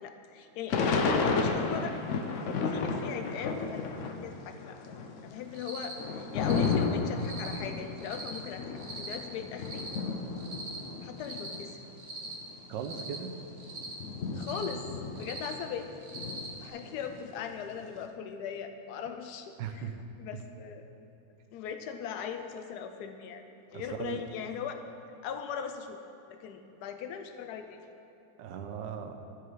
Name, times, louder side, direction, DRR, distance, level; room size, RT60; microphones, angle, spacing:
voice 1, 0.0-0.8 1.1-2.0 2.7-3.8 4.1-4.8 5.2-8.6 9.0-9.9 11.0-11.8 14.3-14.9 15.2-15.9 16.6-19.9 20.2-20.8 21.5-23.4 23.7-24.8 25.2-26.0 26.3-27.9, left 7 dB, 70° left, 7 dB, 1.1 m, -39 dB
Thunder / Rain, 0.7-4.3 4.6-11.7 12.3-12.4 12.6-15.8 16.1-17.9, left 4 dB, 90° left, 0.6 m, -32 dB
Cricket, 5.5-5.9 6.4-6.7 7.2-7.5 8.0-8.4 8.8-9.1 9.6-10.0 10.4-10.8 11.2-11.6 12.0-12.3 12.8-13.2 13.6-13.9 14.3-14.7 15.1-15.5 16.0-16.5, right 3 dB, 50° right, 1.4 m, -42 dB
voice 2, 12.7-13.3 19.6-19.9 23.7-24.2 28.4-29.2, right 8 dB, 75° right, 6 dB, 1.3 m, -38 dB
12.5 x 4.8 x 4.7 m, 2.9 s
omnidirectional pair, 2.0 m